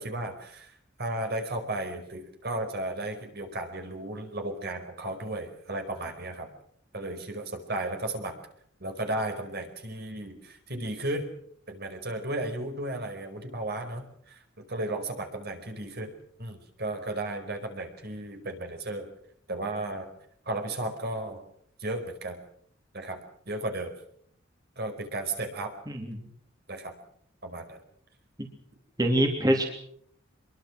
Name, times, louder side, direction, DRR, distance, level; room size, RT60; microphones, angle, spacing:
voice 1, 0.0-6.5 6.9-8.4 8.8-11.3 11.7-19.1 19.5-20.1 20.4-21.4 21.8-22.4 22.9-23.9 24.8-25.7 26.7-26.9 27.4-27.8, right 1 dB, 50° right, 5 dB, 4.9 m, -34 dB
voice 2, 29.0-29.7, right 1 dB, 20° right, 2 dB, 3.1 m, -24 dB
25.5 x 22.5 x 6.3 m, 0.65 s
head